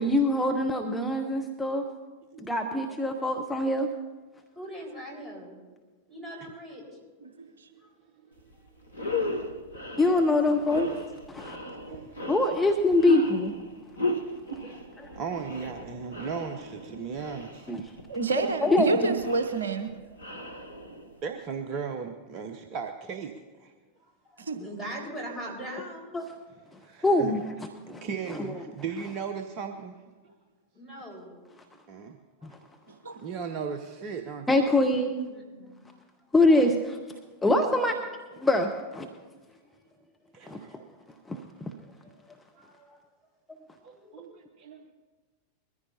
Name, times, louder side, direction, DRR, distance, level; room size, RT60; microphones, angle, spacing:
voice 1, 0.0-1.8 2.4-3.9 10.0-11.0 11.3-11.6 12.3-13.5 15.0-15.1 17.7-17.8 18.6-19.0 26.1-26.3 27.0-28.0 28.3-28.5 32.4-32.6 34.5-35.2 36.3-37.0 37.4-38.0 38.4-39.1 40.5-40.8 41.3-41.7, left 2 dB, 10° left, 3 dB, 0.9 m, -24 dB
voice 2, 4.5-5.6 6.1-6.9 7.8-7.9 24.0-26.1 30.7-31.4 35.3-35.8 42.0-42.2 42.5-43.0 43.8-44.2, right 1 dB, 10° right, -2 dB, 4.9 m, -41 dB
voice 3, 7.4-7.7 18.1-19.9 24.5-24.6 33.0-33.1, right 3 dB, 70° right, 7 dB, 0.8 m, -28 dB
sound 1, 8.4-8.5 8.9-21.2, left 1 dB, 80° left, 1.1 m, -36 dB
voice 4, 11.6-12.1 14.6-14.9 15.1-17.7 20.0-20.6 21.2-23.3 23.6-23.7 24.6-24.7 26.8-27.3 27.9-30.0 31.9-32.2 33.2-34.5 40.3-40.8 43.8-44.9, right 6 dB, 40° right, 6 dB, 0.8 m, -37 dB
22.0 x 14.5 x 2.8 m, 1.3 s
figure-of-eight pair, 90°, 0 cm